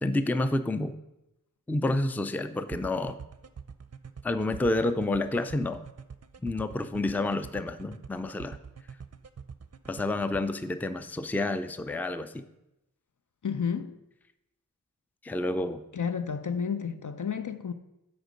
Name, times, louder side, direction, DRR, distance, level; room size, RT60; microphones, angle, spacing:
voice 1, 0.0-0.9 1.7-3.2 4.2-5.8 6.4-8.6 9.9-12.4 15.2-15.8, left 2 dB, 5° left, 0.4 m, -29 dB
sound 1, 2.7-10.4, right 6 dB, 50° right, 0.5 m, -44 dB
voice 2, 13.4-14.0 15.9-17.7, left 6 dB, 65° left, 0.6 m, -31 dB
8.0 x 4.5 x 5.1 m
wide cardioid pair, 40°, 33 cm